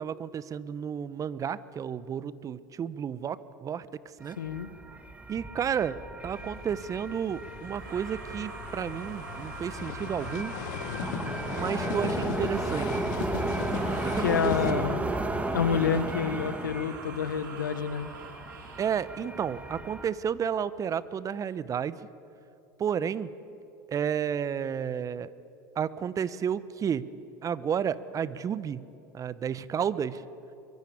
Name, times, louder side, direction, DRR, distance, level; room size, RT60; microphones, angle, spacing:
voice 1, 0.0-3.9 4.2-4.4 5.3-10.5 11.5-13.0 14.0-14.8 18.8-22.0 22.8-23.3 23.9-25.3 25.8-27.1 27.4-28.8 29.1-30.2, right 8 dB, 35° right, 17 dB, 1.0 m, -32 dB
sound 1, 4.2-20.1, right 2 dB, 15° right, 2.2 m, -35 dB
voice 2, 4.4-4.7 14.2-15.2 15.5-18.1, left 7 dB, 85° left, 14 dB, 1.2 m, -28 dB
sound 2, 6.3-14.7, left 9 dB, 70° left, 1.8 m, -38 dB
sound 3, 7.7-12.2 13.6-19.1, right 4 dB, 75° right, 4.4 m, -45 dB
23.5 x 22.5 x 8.6 m, 3.0 s
hypercardioid pair, 80°, 10 cm